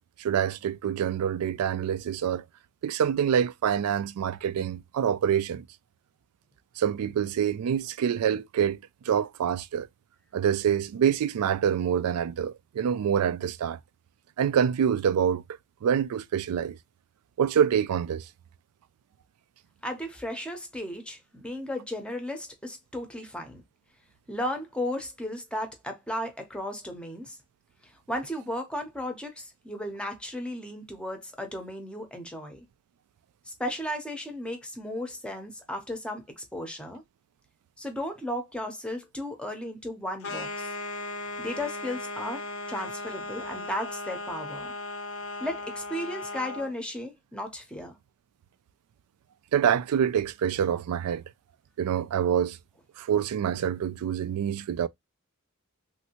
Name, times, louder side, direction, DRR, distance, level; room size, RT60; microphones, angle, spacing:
voice 1, 0.2-2.4 2.8-5.6 6.8-8.8 9.1-9.9 10.3-13.8 14.4-15.4 15.8-16.8 17.4-18.3 49.5-51.2 51.8-52.6 53.0-54.9, right 8 dB, 85° right, 0.3 m, -26 dB
voice 2, 19.8-23.6 24.3-27.4 27.8-32.6 33.5-37.0 37.8-40.7 41.4-44.7 45.4-48.0, left 1 dB, 5° left, 0.6 m, -35 dB
sound 1, 40.2-46.7, left 2 dB, 65° left, 0.6 m, -37 dB
3.2 x 2.6 x 2.8 m
head